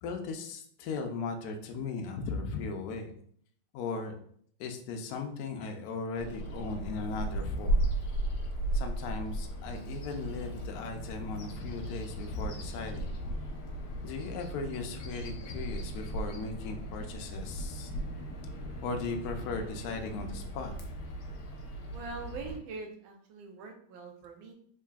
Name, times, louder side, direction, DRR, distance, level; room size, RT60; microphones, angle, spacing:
voice 1, 0.0-3.1 3.7-4.1 4.6-7.8 8.7-13.1 14.0-17.9 18.8-20.7, left 4 dB, 85° left, 4 dB, 0.8 m, -37 dB
Bird vocalization bird call bird song, 6.2-22.6, right 1 dB, 70° left, 1.1 m, -36 dB
voice 2, 21.9-24.5, right 4 dB, 75° right, 3 dB, 1.4 m, -43 dB
3.6 x 3.3 x 2.3 m, 0.62 s
omnidirectional pair, 2.3 m